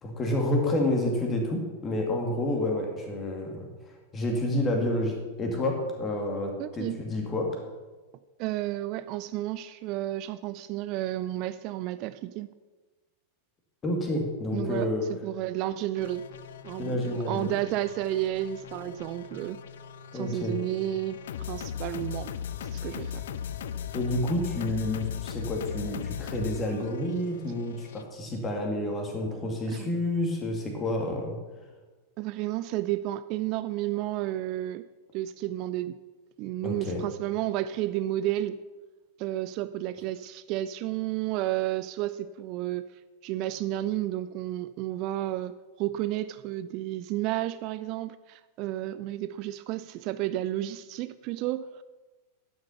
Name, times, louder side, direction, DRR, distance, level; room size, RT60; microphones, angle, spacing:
voice 1, 0.0-3.7 4.1-5.1 5.4-7.5 13.8-15.0 16.8-17.5 20.1-20.6 23.9-31.3 36.6-37.0, left 1 dB, 20° left, 1 dB, 2.3 m, -29 dB
voice 2, 6.6-7.0 8.4-12.5 14.5-16.2 16.6-19.6 20.1-21.2 21.5-22.3 22.6-23.2 29.7-29.9 32.2-34.8 35.1-36.0 36.4-38.6 39.2-42.9 43.2-51.8, right 14 dB, 40° right, 14 dB, 0.3 m, -31 dB
sound 1, 16.0-28.0, left 8 dB, 60° left, 0.5 m, -38 dB
11.0 x 6.6 x 5.6 m, 1.3 s
figure-of-eight pair, 90°, 0 cm